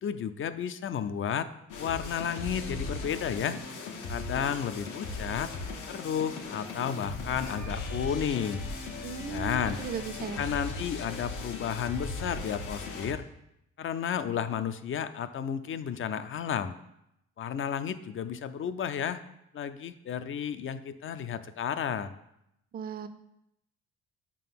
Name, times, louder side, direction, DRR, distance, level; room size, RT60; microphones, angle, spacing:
voice 1, 0.0-1.5 1.8-3.6 4.1-5.5 5.9-8.6 9.3-9.8 10.4-13.2 13.8-16.7 17.4-19.2 19.5-22.2, left 8 dB, 45° left, 12 dB, 0.4 m, -32 dB
sound 1, 1.7-13.1, left 3 dB, 80° left, 1.0 m, -38 dB
voice 2, 9.0-10.5 22.7-23.1, right 6 dB, 30° right, 9 dB, 0.4 m, -37 dB
5.0 x 3.8 x 5.8 m, 0.82 s
cardioid pair, 90°, 30 cm